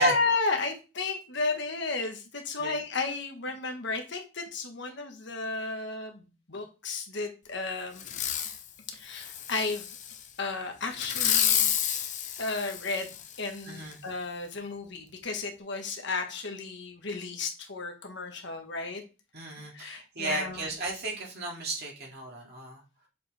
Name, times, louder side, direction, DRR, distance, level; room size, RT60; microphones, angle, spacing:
voice 1, 0.0-8.1 8.9-9.9 10.4-11.7 12.4-19.0 19.7-20.7, left 3 dB, 55° left, 4 dB, 1.3 m, -33 dB
Fireworks, 8.0-8.6 9.1-10.2 11.0-13.4 13.9-14.0, left 9 dB, 35° left, 0.6 m, -29 dB
voice 2, 13.7-14.0 19.3-22.8, right 2 dB, 50° right, -1 dB, 2.4 m, -33 dB
7.5 x 4.5 x 3.4 m, 0.30 s
head